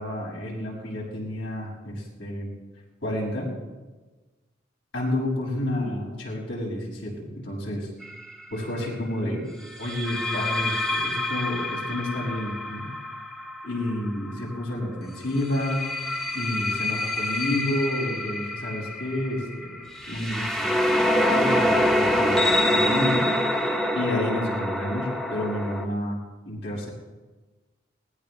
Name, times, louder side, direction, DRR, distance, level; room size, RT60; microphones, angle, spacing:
voice 1, 0.0-2.5 3.0-3.5 4.9-7.9 8.5-9.4 9.8-12.9 13.6-15.8 16.3-20.9 21.3-23.2 23.9-26.2 26.5-26.9, left 1 dB, 70° left, -4 dB, 7.0 m, -30 dB
sound 1, 8.0-8.3 9.8-14.6 15.4-25.8, left 1 dB, ahead, 1.2 m, -26 dB
20.5 x 19.0 x 3.4 m, 1.2 s
head